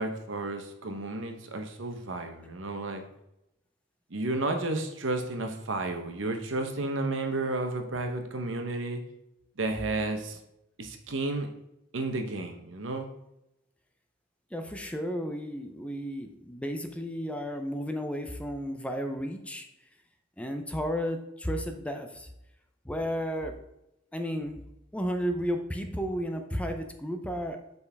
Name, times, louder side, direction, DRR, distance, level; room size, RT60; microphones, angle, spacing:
voice 1, 0.0-3.0 4.1-9.0 9.6-10.4 10.8-11.5 11.9-13.1, right 2 dB, 90° right, 6 dB, 0.9 m, -32 dB
voice 2, 14.5-19.7 20.4-22.3 22.8-23.6 24.1-24.6 24.9-27.8, equal, 5° left, 5 dB, 0.6 m, -33 dB
7.0 x 5.3 x 3.4 m, 0.85 s
head